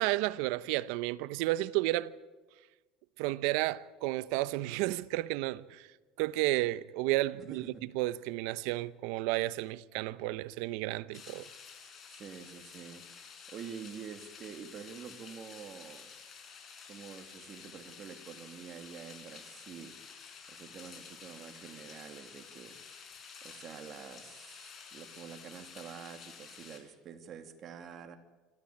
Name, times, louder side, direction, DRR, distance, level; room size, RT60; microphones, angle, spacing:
voice 1, 0.0-2.1 3.2-5.9 6.2-7.6 7.9-11.5, right 18 dB, 75° right, 0.7 m, -32 dB
voice 2, 7.5-7.8 12.1-13.1 13.5-16.1 16.9-19.9 20.5-22.8 23.4-28.2, right 7 dB, 45° right, 2.7 m, -47 dB
sound 1, 11.1-26.8, left 6 dB, 40° left, 5.4 m, -51 dB
27.0 x 13.5 x 8.6 m
supercardioid pair, 100°, 0 cm